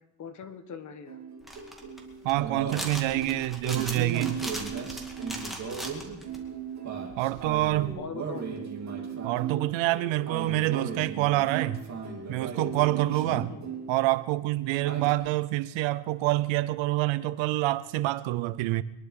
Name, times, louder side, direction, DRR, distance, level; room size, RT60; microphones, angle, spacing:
voice 1, 0.2-1.2 7.9-8.5 13.2-13.6 15.0-15.2, left 6 dB, 35° left, 1.4 m, -41 dB
sound 1, 1.1-14.2 14.4-15.1, right 5 dB, 35° right, 2.5 m, -36 dB
sound 2, 1.4-6.4 7.1-7.9, right 1 dB, ahead, 2.3 m, -39 dB
voice 2, 2.2-4.4 7.2-8.0 9.2-11.8 12.3-13.5 13.9-18.8, right 17 dB, 70° right, 0.8 m, -27 dB
23.5 x 11.0 x 4.8 m
cardioid pair, 145°, 47 cm